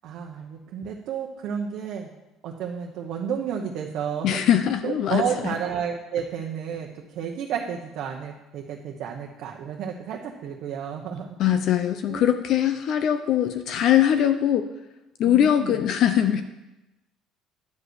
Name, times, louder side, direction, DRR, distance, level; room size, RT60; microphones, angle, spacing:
voice 1, 0.0-2.1 2.4-4.4 4.8-11.5 12.1-12.3 15.2-15.8, right 7 dB, 55° right, 0 dB, 0.9 m, -31 dB
voice 2, 4.2-5.6 11.4-14.7 15.2-16.4, left 10 dB, 50° left, 8 dB, 0.6 m, -21 dB
10.5 x 5.2 x 8.1 m, 0.99 s
cardioid pair, 155°, 0 cm